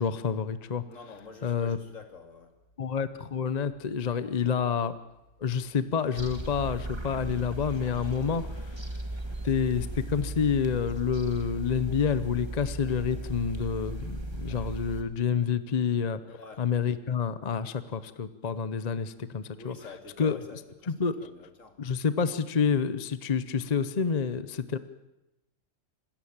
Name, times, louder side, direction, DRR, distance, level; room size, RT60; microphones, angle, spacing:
voice 1, 0.0-0.8 1.4-1.8 2.8-4.9 5.4-8.8 9.4-16.2 16.6-19.8 20.2-20.6 20.9-21.1 21.8-24.8, left 6 dB, 35° left, 13 dB, 0.7 m, -28 dB
voice 2, 0.9-2.5 8.2-8.5 16.3-16.6 19.5-21.7, left 3 dB, 70° left, 5 dB, 2.8 m, -47 dB
sound 1, 6.2-15.0, right 1 dB, 20° right, 1.7 m, -37 dB
26.0 x 13.5 x 8.7 m, 0.95 s
omnidirectional pair, 1.4 m